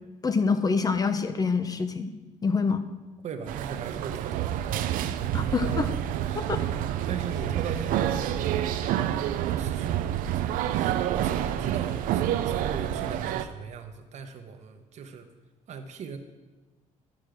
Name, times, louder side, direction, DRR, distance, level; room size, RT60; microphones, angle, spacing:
voice 1, 0.2-2.1 2.4-2.8 5.3-5.9 6.3-6.6, left 4 dB, 30° left, 10 dB, 0.6 m, -26 dB
voice 2, 3.2-5.0 5.3-5.8 6.2-6.7 7.0-8.5 9.6-10.0 10.7-15.3 15.7-16.2, right 6 dB, 55° right, 7 dB, 1.0 m, -38 dB
sound 1, 3.5-13.4, right 11 dB, 85° right, 0.5 m, -28 dB
12.0 x 6.2 x 5.1 m, 1.2 s
cardioid pair, 125°, 14 cm